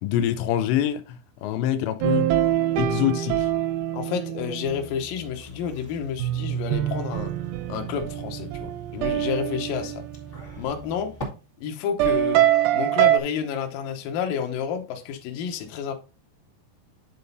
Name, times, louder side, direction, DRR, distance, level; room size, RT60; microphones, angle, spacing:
voice 1, 0.0-2.3 2.8-3.5, left 11 dB, 85° left, 2.9 m, -25 dB
sound 1, 2.0-4.9 6.2-10.7 12.0-13.2, right 12 dB, 80° right, 2.4 m, -24 dB
voice 2, 3.9-7.3 7.7-10.1 10.6-11.1 11.6-12.5 12.7-15.9, left 7 dB, 70° left, 2.3 m, -30 dB
sound 2, 4.7-11.2, right 1 dB, 30° left, 1.0 m, -45 dB
9.8 x 3.9 x 4.0 m
omnidirectional pair, 5.1 m